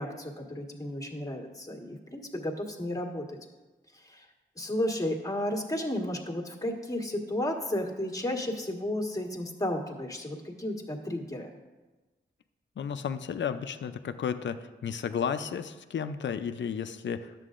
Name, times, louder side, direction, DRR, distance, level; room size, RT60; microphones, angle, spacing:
voice 1, 0.0-3.4 3.9-4.2 4.6-11.5, left 1 dB, 15° left, 0 dB, 1.5 m, -33 dB
voice 2, 12.8-14.6 14.8-17.3, left 7 dB, 65° left, 10 dB, 0.5 m, -33 dB
11.0 x 7.5 x 2.5 m, 1.2 s
cardioid pair, 50°, 20 cm